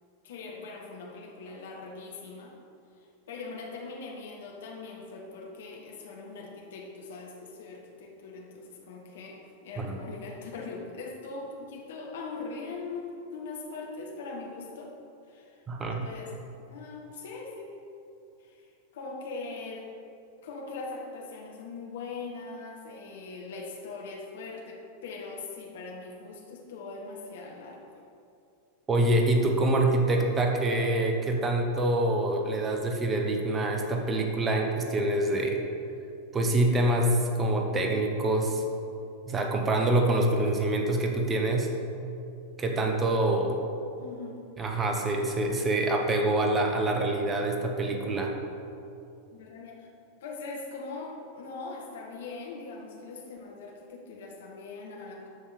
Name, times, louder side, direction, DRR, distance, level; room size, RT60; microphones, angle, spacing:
voice 1, 0.2-2.6 3.3-14.9 15.3-16.3 16.7-17.6 18.4-18.7 18.9-19.9 20.4-27.8 44.0-44.4 49.3-49.9 50.2-55.3, left 3 dB, 60° left, -1 dB, 1.7 m, -41 dB
voice 2, 15.7-16.1 28.9-35.6 36.3-38.6 39.3-41.7 42.6-43.6 44.6-48.3, right 1 dB, 20° right, 3 dB, 1.1 m, -26 dB
13.0 x 5.4 x 5.2 m, 2.6 s
figure-of-eight pair, 90°, 0 cm